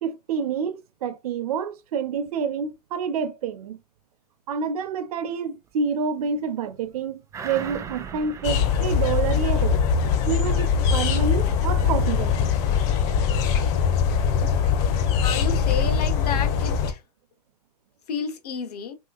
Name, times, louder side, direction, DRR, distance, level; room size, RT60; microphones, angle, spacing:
voice 1, 0.0-3.8 4.5-9.8 10.3-12.5, right 6 dB, 65° right, 0.6 m, -28 dB
sound 1, 7.3-10.2 10.6-10.7, right 6 dB, 15° right, 0.4 m, -39 dB
sound 2, 8.4-16.9, left 7 dB, 45° left, 0.7 m, -22 dB
voice 2, 15.2-17.0 18.1-19.0, left 6 dB, 70° left, 0.9 m, -31 dB
3.1 x 2.9 x 2.4 m
hypercardioid pair, 125°, 21 cm